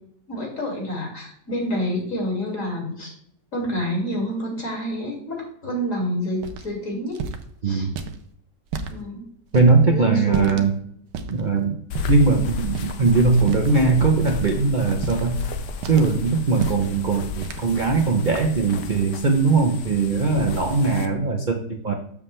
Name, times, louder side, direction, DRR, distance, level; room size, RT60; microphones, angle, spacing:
voice 1, 0.3-3.1 3.5-7.2 7.6-7.9 8.9-9.3 9.9-10.6, equal, 50° left, -1 dB, 3.0 m, -28 dB
sound 1, 6.4-6.7 7.1-7.4 8.0-8.2 8.7-8.9 9.5-9.7 10.3-10.7 11.1-11.4 11.9-12.2 12.7-13.0 13.4-13.8 14.3-14.5 15.0-15.4 15.8-16.1 16.5-16.9 17.4-17.7, right 5 dB, 85° right, 1.4 m, -31 dB
voice 2, 7.6-7.9 9.5-10.7 11.3-11.8 12.1-15.4 15.9-21.9, right 4 dB, 40° right, 3 dB, 0.7 m, -20 dB
sound 2, 11.9-21.1, left 5 dB, 75° left, 1.4 m, -33 dB
7.1 x 7.0 x 3.2 m, 0.66 s
omnidirectional pair, 1.8 m